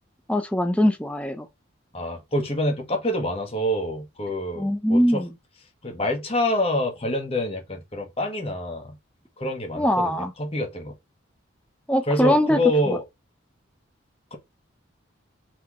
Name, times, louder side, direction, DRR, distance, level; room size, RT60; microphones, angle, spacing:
voice 1, 0.3-1.5 4.6-5.3 9.8-10.3 11.9-12.6 12.9-13.0, equal, 5° left, 0.6 m, -22 dB
voice 2, 1.9-5.2 5.8-9.0 9.4-10.9 12.1-13.0, left 1 dB, 30° left, 1.4 m, -26 dB
4.2 x 4.0 x 3.0 m
head